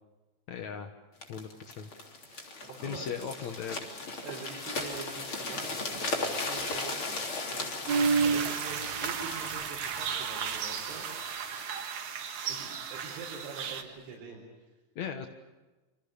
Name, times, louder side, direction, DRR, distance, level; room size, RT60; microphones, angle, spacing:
voice 1, 0.5-0.9 1.3-1.9 2.8-4.0 14.9-15.3, left 7 dB, 75° left, 6 dB, 1.6 m, -38 dB
sound 1, 1.2-13.1 13.7-13.8, left 3 dB, 30° left, 3.4 m, -38 dB
voice 2, 2.2-3.5 4.2-11.1 12.5-14.7, right 4 dB, 80° right, -2 dB, 6.9 m, -45 dB
sound 2, 7.9-13.8, right 6 dB, 55° right, 2.3 m, -32 dB
28.0 x 25.5 x 6.9 m, 1.2 s
omnidirectional pair, 5.5 m